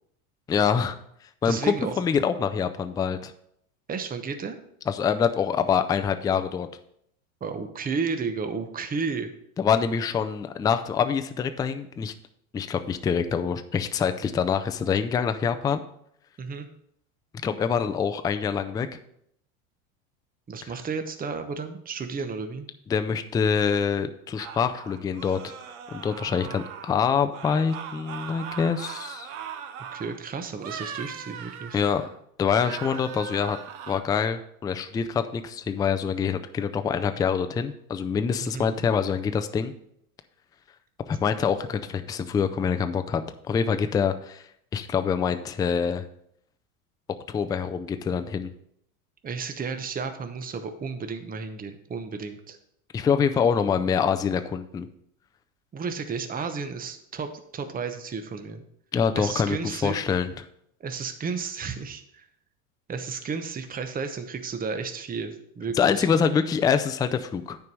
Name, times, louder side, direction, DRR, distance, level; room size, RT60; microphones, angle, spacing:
voice 1, 0.5-1.0 1.4-3.3 4.9-6.7 9.6-12.1 12.5-15.8 17.4-18.9 20.6-20.7 22.9-25.5 25.9-29.3 31.7-32.0 32.4-33.6 33.9-39.7 41.1-43.2 43.5-44.5 44.7-46.0 47.3-48.5 52.9-54.9 58.9-59.6 59.8-60.3 65.8-67.6, left 6 dB, 10° left, 9 dB, 0.3 m, -25 dB
voice 2, 1.4-2.0 3.9-4.6 7.4-9.3 16.4-16.7 20.5-22.7 29.9-31.8 38.4-38.7 49.2-52.6 55.7-58.6 59.1-60.0 60.8-62.2 62.9-66.1, right 5 dB, 20° right, 8 dB, 0.9 m, -32 dB
sound 1, 24.4-27.0 27.3-30.2 30.6-32.2 32.5-34.0, right 8 dB, 70° right, 1.1 m, -39 dB
9.4 x 4.7 x 5.3 m, 0.72 s
hypercardioid pair, 95°, 43 cm